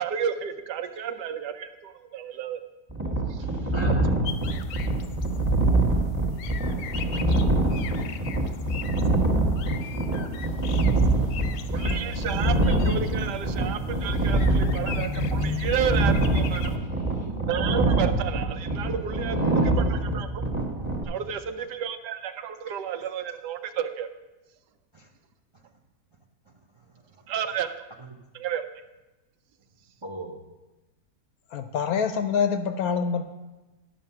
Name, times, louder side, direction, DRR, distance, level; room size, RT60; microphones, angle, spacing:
voice 1, 0.0-2.6 3.3-3.4 3.8-3.9 11.7-16.8 17.5-20.4 21.1-24.1 27.3-27.7 28.3-28.6, right 8 dB, 80° right, 9 dB, 1.2 m, -31 dB
sound 1, 2.9-21.0, right 2 dB, 10° right, 0.9 m, -25 dB
voice 2, 3.4-4.1 9.8-9.9 10.4-12.3 14.1-14.5 16.7-17.3 24.9-25.1 25.5-25.6 28.0-28.2 30.0-30.4, right 2 dB, 45° right, 0 dB, 0.3 m, -43 dB
sound 2, 4.2-16.8, left 7 dB, 90° left, 1.3 m, -38 dB
voice 3, 31.5-33.2, left 6 dB, 70° left, 9 dB, 0.9 m, -25 dB
11.0 x 5.9 x 5.7 m, 1.1 s
omnidirectional pair, 1.8 m